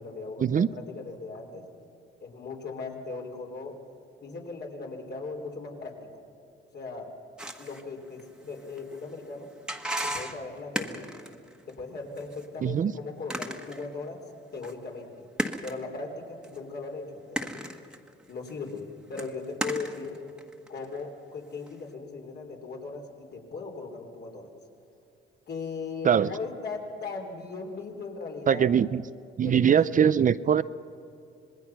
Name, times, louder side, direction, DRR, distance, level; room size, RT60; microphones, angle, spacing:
voice 1, 0.0-1.6 2.2-3.8 4.2-6.1 6.7-7.1 7.6-9.5 10.0-11.1 11.7-14.2 14.5-15.3 15.6-17.6 18.3-20.2 20.7-24.5 25.5-28.7 29.4-29.8, left 4 dB, 55° left, 1 dB, 3.9 m, -38 dB
sound 1, 7.4-11.7 12.2-12.5 13.3-14.1 14.6-14.7 15.4-15.8 16.4-16.6 17.4-18.8 19.2-21.1 21.7-21.8, right 1 dB, 5° right, 1.6 m, -35 dB
voice 2, 12.6-12.9 26.0-26.3 28.5-29.0 29.4-30.6, right 8 dB, 40° right, 15 dB, 0.5 m, -22 dB
26.5 x 20.5 x 6.0 m, 2.7 s
cardioid pair, 90°, 20 cm